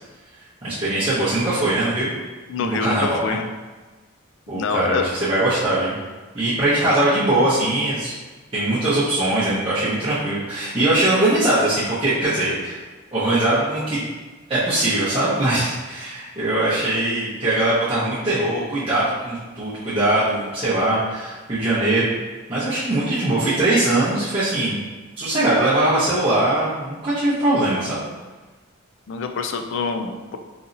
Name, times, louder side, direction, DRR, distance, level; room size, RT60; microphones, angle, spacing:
voice 1, 0.6-2.1 2.6-3.4 4.5-6.0 6.3-8.1 8.5-12.8 13.1-14.1 14.5-22.1 22.5-24.8 25.2-28.0, right 1 dB, 25° right, -13 dB, 0.8 m, -21 dB
voice 2, 2.5-3.5 4.5-5.1 29.1-30.4, left 5 dB, 60° left, 5 dB, 0.3 m, -26 dB
4.0 x 2.8 x 2.5 m, 1.3 s
head